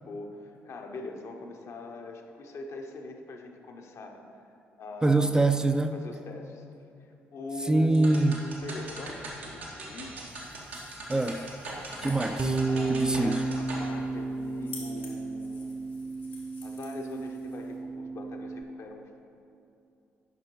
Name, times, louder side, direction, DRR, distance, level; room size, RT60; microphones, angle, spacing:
voice 1, 0.0-5.6 5.9-6.6 7.0-10.3 12.6-15.7 16.6-19.2, left 2 dB, 55° left, 3 dB, 0.8 m, -42 dB
voice 2, 5.0-6.0 7.7-8.4 11.1-11.5 12.0-12.6 12.9-13.5, right 2 dB, 10° right, 8 dB, 0.3 m, -24 dB
sound 1, 7.9-13.9, right 2 dB, 85° right, 1.0 m, -40 dB
sound 2, 10.3-17.8, left 3 dB, 85° left, 1.2 m, -51 dB
Bass guitar, 12.4-18.6, right 3 dB, 30° right, 0.7 m, -32 dB
9.5 x 5.7 x 3.0 m, 2.7 s
figure-of-eight pair, 45°, 6 cm